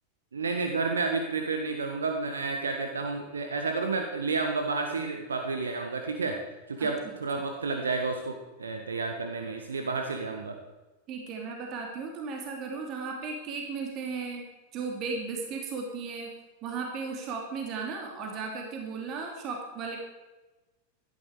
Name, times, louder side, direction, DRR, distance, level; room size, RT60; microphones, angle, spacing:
voice 1, 0.3-6.4 6.7-10.6, right 4 dB, 70° right, 4 dB, 1.6 m, -31 dB
voice 2, 11.1-14.4 14.7-16.3 16.6-20.0, right 4 dB, 35° right, 2 dB, 2.9 m, -35 dB
17.0 x 13.0 x 4.9 m, 1.1 s
figure-of-eight pair, 90°, 0 cm